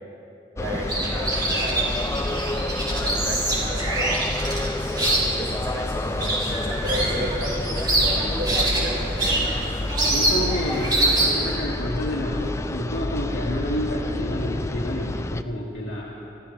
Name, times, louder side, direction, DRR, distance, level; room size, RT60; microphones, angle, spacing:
voice 1, 0.5-1.9 2.8-4.2 5.1-9.4, equal, 90° right, -5 dB, 4.9 m, -33 dB
sound 1, 0.6-15.4, left 2 dB, 15° left, 0.3 m, -29 dB
sound 2, 0.7-11.5, right 1 dB, 25° right, 3.7 m, -25 dB
voice 2, 10.1-16.1, equal, 75° left, -6 dB, 2.2 m, -29 dB
27.0 x 16.0 x 3.3 m, 2.8 s
head